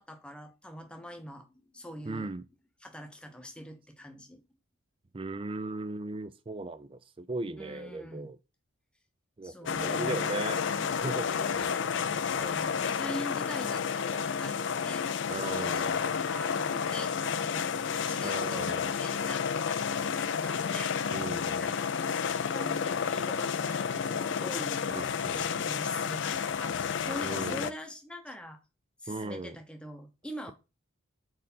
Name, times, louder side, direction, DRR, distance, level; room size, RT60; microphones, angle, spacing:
voice 1, 0.0-2.3 2.8-4.4 7.6-8.3 9.4-10.4 10.7-10.9 11.2-15.1 15.3-17.7 18.1-20.9 21.6-21.9 22.5-24.9 25.3-28.6 29.0-30.5, left 1 dB, 5° left, 0.8 m, -43 dB
voice 2, 2.0-2.4 5.1-8.4 9.4-11.5 15.3-16.0 18.2-18.9 21.1-21.7 24.9-25.5 27.2-27.7 29.1-29.6, right 2 dB, 25° right, 0.4 m, -38 dB
sound 1, 9.7-27.7, left 6 dB, 55° left, 0.4 m, -31 dB
4.8 x 4.6 x 5.5 m
head